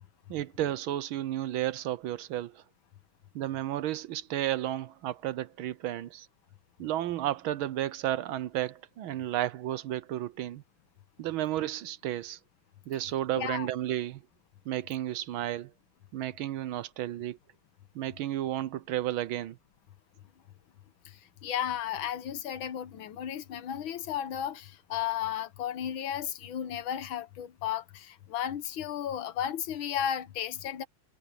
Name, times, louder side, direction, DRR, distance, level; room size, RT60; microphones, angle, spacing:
voice 1, 0.3-2.6 3.3-6.3 6.8-10.6 11.2-12.4 12.9-14.2 14.6-15.7 16.1-17.4 17.9-19.6, right 13 dB, 80° right, 1.6 m, -32 dB
voice 2, 13.4-13.7 21.1-30.9, left 10 dB, 75° left, 1.8 m, -34 dB
omnidirectional pair, 2.3 m